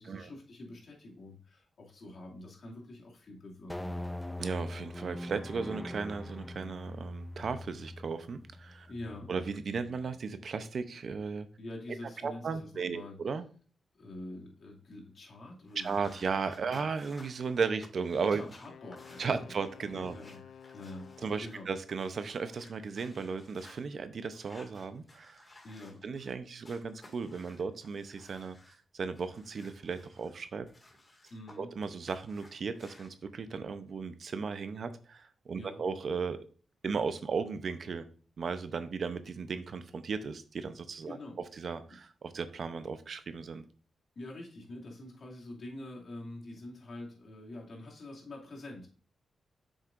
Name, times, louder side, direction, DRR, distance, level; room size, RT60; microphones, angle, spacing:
voice 1, 0.0-3.9 8.9-9.3 11.6-13.2 14.0-16.2 16.7-16.9 18.3-19.5 19.9-21.7 25.6-26.1 31.3-31.7 35.5-35.8 41.1-41.4 44.2-48.9, left 1 dB, 60° left, -2 dB, 2.4 m, -46 dB
sound 1, 3.7-10.2, left 1 dB, 10° left, 0.5 m, -42 dB
voice 2, 4.4-8.9 9.3-11.5 12.2-13.4 15.8-18.4 19.2-20.1 21.2-25.4 26.0-30.6 31.6-36.4 36.8-38.1 38.4-41.2 41.6-43.6, right 5 dB, 55° right, 11 dB, 0.7 m, -35 dB
sound 2, 15.7-23.8 24.3-26.3 26.6-28.8 29.1-31.5 31.8-33.1, left 2 dB, 30° left, 2.1 m, -58 dB
Wind instrument woodwind instrument, 18.7-21.8, left 7 dB, 80° left, 0.5 m, -52 dB
7.6 x 6.4 x 2.5 m, 0.41 s
cardioid pair, 100°, 0 cm